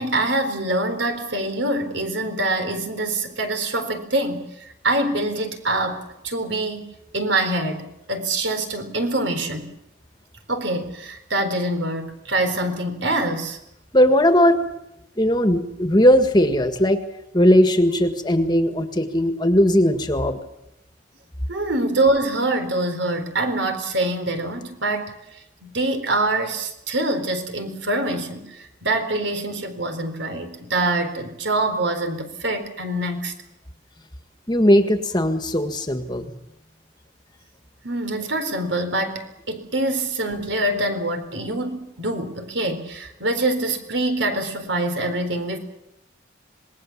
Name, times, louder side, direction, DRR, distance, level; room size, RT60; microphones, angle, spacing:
voice 1, 0.0-6.9 7.1-9.7 10.5-13.6 21.5-25.1 25.6-33.3 37.8-45.6, right 2 dB, 70° right, 7 dB, 4.0 m, -25 dB
voice 2, 13.9-14.6 15.2-17.0 17.3-20.4 34.5-36.3, equal, 20° left, 7 dB, 1.7 m, -18 dB
26.5 x 20.0 x 7.3 m, 0.84 s
head